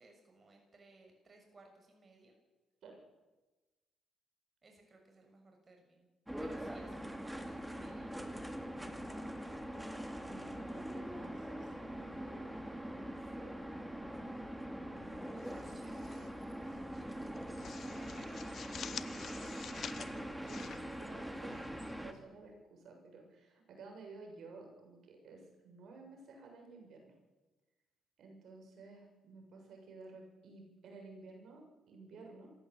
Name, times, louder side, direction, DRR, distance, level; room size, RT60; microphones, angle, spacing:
voice 1, 0.0-2.3 4.6-6.1 6.4-8.2 15.2-16.3 17.9-18.5, right 2 dB, 35° right, 3 dB, 6.4 m, -61 dB
sound 1, 6.3-22.1, equal, 5° right, 2.7 m, -43 dB
voice 2, 8.8-13.6 14.9-15.8 16.6-16.8 20.0-27.1 28.2-32.5, right 3 dB, 70° right, 2 dB, 7.0 m, -55 dB
sound 2, 15.4-16.3 16.6-16.8 17.2-21.7, left 8 dB, 60° left, 1.1 m, -48 dB
26.0 x 15.5 x 8.4 m, 1.2 s
cardioid pair, 90°, 0 cm